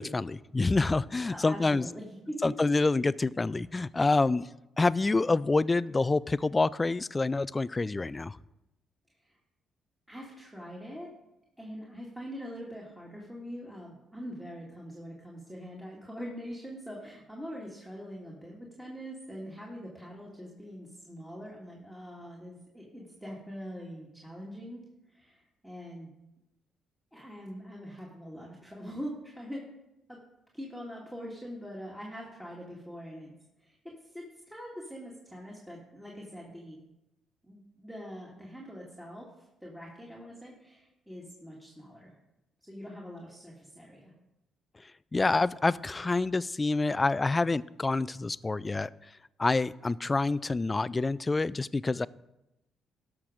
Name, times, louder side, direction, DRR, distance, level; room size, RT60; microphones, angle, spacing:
voice 1, 0.0-1.9 2.4-4.5 4.8-8.4 44.8-48.9 49.4-52.1, left 3 dB, 25° left, 19 dB, 0.3 m, -27 dB
voice 2, 1.3-2.5 9.2-9.4 10.1-11.1 11.6-26.1 27.1-29.6 30.1-30.2 30.5-36.8 37.4-42.1 42.6-44.1, equal, 5° right, -4 dB, 2.0 m, -43 dB
13.0 x 5.9 x 5.0 m, 0.91 s
cardioid pair, 90°, 0 cm